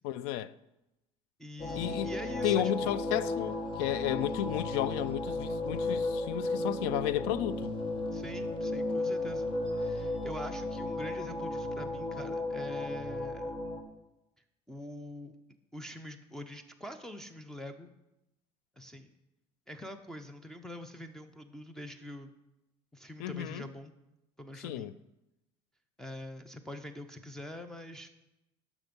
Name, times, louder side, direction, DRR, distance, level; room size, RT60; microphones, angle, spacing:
voice 1, 0.0-0.5 1.7-2.1 2.4-7.8 23.2-23.7 24.6-24.9, left 12 dB, 90° left, 0.4 m, -33 dB
voice 2, 1.4-3.0 8.1-9.5 9.8-13.6 14.7-15.3 15.7-17.9 18.8-19.1 19.7-22.3 22.9-23.9 24.4-24.9 26.0-28.1, left 1 dB, 5° left, 0.7 m, -44 dB
sound 1, 1.6-13.8, left 2 dB, 45° left, 1.7 m, -34 dB
12.0 x 6.1 x 5.3 m
cardioid pair, 120°, 13 cm